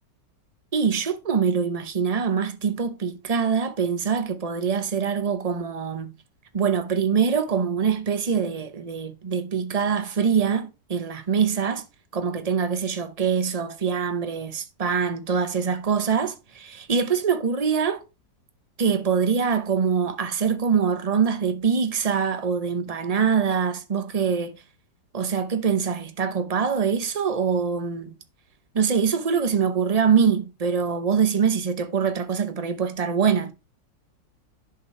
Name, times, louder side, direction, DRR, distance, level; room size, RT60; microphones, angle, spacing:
voice 1, 0.7-6.1 6.5-11.8 12.1-18.0 18.8-24.6 25.1-28.1 28.7-33.5, right 6 dB, 55° right, 0.4 m, -24 dB
11.0 x 6.0 x 3.1 m
omnidirectional pair, 2.1 m